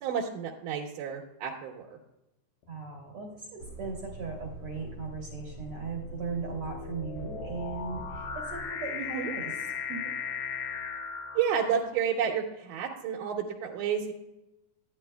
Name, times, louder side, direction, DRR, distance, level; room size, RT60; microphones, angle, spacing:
voice 1, 0.0-1.9 9.1-9.3 11.3-14.1, right 7 dB, 75° right, -1 dB, 2.3 m, -30 dB
sound 1, 2.7-3.1 4.0-12.2, left 6 dB, 90° left, 1.3 m, -38 dB
voice 2, 2.7-10.1, right 4 dB, 60° right, 0 dB, 1.6 m, -38 dB
sound 2, 3.6-8.7, right 1 dB, 65° left, 2.2 m, -44 dB
10.5 x 10.0 x 2.2 m, 0.94 s
omnidirectional pair, 4.0 m